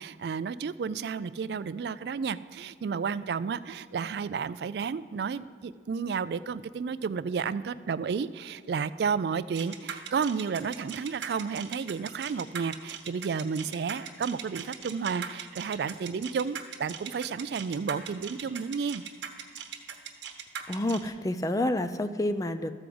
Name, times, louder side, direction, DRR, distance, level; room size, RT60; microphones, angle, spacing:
voice 1, 0.0-19.0, right 6 dB, 60° right, 15 dB, 0.3 m, -32 dB
sound 1, 9.5-21.1, right 8 dB, 85° right, 1.1 m, -39 dB
voice 2, 20.7-22.7, left 1 dB, 20° left, 11 dB, 0.4 m, -29 dB
14.0 x 4.9 x 7.8 m, 2.1 s
head